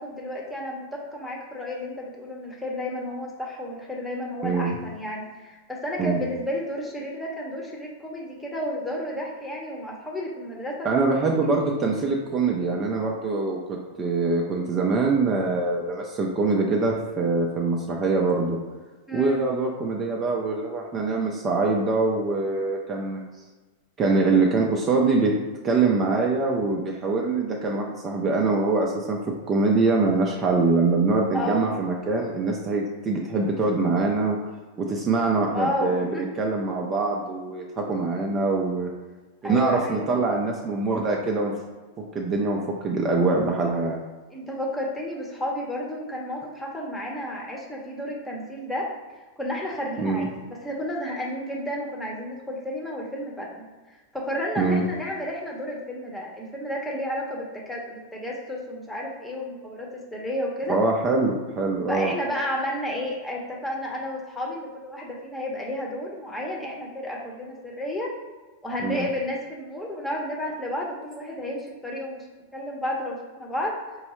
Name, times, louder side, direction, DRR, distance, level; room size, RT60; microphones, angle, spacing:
voice 1, 0.0-11.1 19.1-19.4 31.3-31.7 35.5-36.2 39.4-40.1 44.3-48.9 49.4-53.7 54.1-60.8 61.9-68.1 68.6-72.3 72.5-73.7, left 1 dB, 10° left, -2 dB, 0.9 m, -32 dB
voice 2, 4.4-4.8 6.0-6.2 10.8-18.6 19.1-23.2 24.0-25.3 25.6-29.2 29.5-34.4 34.8-38.9 39.4-41.5 42.0-44.0 50.0-50.3 54.6-54.8 60.7-62.1 68.8-69.1, right 3 dB, 30° right, -1 dB, 0.5 m, -24 dB
4.5 x 2.0 x 3.0 m, 1.3 s
hypercardioid pair, 110°, 0 cm